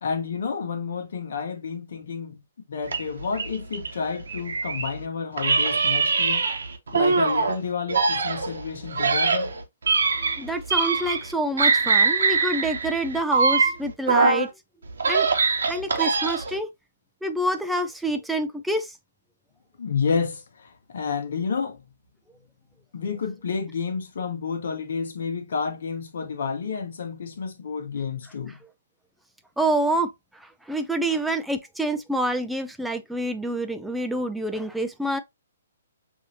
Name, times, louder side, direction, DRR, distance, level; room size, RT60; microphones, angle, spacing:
voice 1, 0.0-2.4 2.7-6.5 6.9-9.5 19.8-21.8 22.9-28.6, left 5 dB, 65° left, 1.1 m, -30 dB
sound 1, 2.9-5.0 5.4-7.6 7.9-11.3 11.6-14.5 14.9-16.6, right 4 dB, 80° right, 1.0 m, -23 dB
voice 2, 10.2-14.5 15.1-15.3 15.7-16.7 17.2-18.9 29.6-30.1 30.7-35.2, right 1 dB, 5° right, 0.4 m, -27 dB
6.1 x 2.7 x 2.7 m
hypercardioid pair, 140°, 0 cm